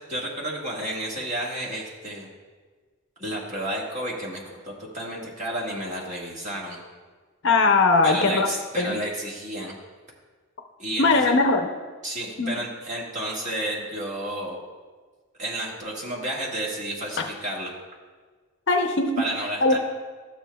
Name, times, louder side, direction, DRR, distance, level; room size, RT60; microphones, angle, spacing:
voice 1, 0.1-2.3 3.2-6.8 8.0-9.7 10.8-11.3 12.0-14.6 15.4-17.7 19.2-19.8, right 1 dB, 35° right, -4 dB, 1.6 m, -31 dB
voice 2, 7.4-9.0 11.0-11.7 12.4-12.5 18.7-19.3 19.6-19.8, left 3 dB, 55° left, 5 dB, 0.6 m, -20 dB
12.5 x 7.2 x 2.2 m, 1.4 s
head